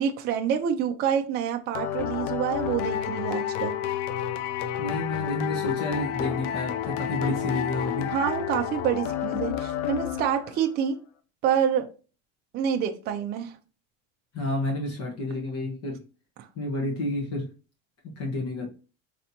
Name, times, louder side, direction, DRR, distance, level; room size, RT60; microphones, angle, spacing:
voice 1, 0.0-3.8 8.1-11.0 11.4-11.9 12.5-13.6, right 8 dB, 30° right, 0.4 m, -27 dB
sound 1, 1.7-10.7, left 10 dB, 70° left, 0.7 m, -30 dB
voice 2, 4.8-8.1 14.3-16.0 16.5-17.5 18.0-18.7, left 2 dB, 45° left, 1.3 m, -30 dB
4.2 x 3.3 x 2.8 m
cardioid pair, 155°, 36 cm